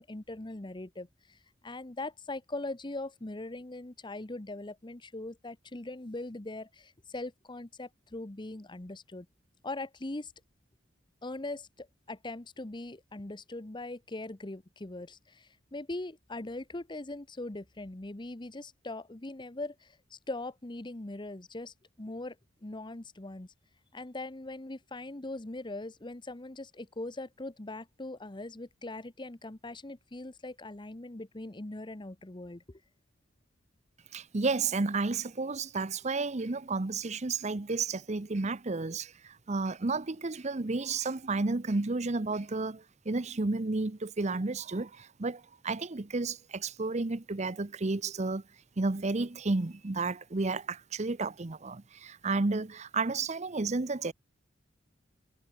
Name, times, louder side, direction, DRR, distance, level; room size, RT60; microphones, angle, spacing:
voice 1, 0.0-1.4 1.6-9.3 9.6-10.3 11.2-22.4 22.6-23.5 23.9-32.8, left 2 dB, 25° left, 1.0 m, -41 dB
voice 2, 34.1-48.4 48.8-54.1, right 3 dB, 35° right, 0.8 m, -32 dB
head